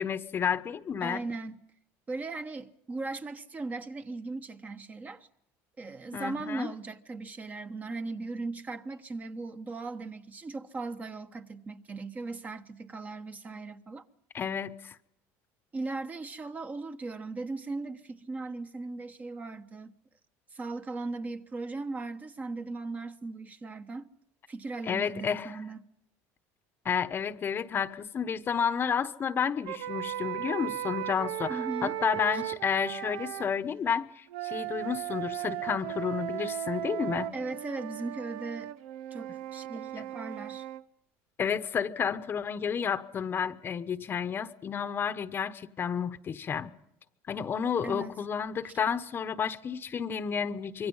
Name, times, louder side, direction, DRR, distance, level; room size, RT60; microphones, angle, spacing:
voice 1, 0.0-1.2 6.1-6.7 14.3-15.0 24.8-25.6 26.8-37.3 40.0-40.1 41.4-46.7 47.3-50.9, left 7 dB, 30° left, 1.0 m, -31 dB
voice 2, 1.0-1.6 2.1-5.3 5.8-14.0 15.7-19.9 20.5-24.1 24.5-25.8 31.5-32.0 32.3-32.4 37.3-38.7 39.1-40.7 47.8-48.1, right 3 dB, 20° right, 1.1 m, -38 dB
sound 1, 29.7-33.5 34.3-40.8, right 13 dB, 85° right, 0.9 m, -36 dB
25.5 x 23.5 x 5.6 m
cardioid pair, 130°, 7 cm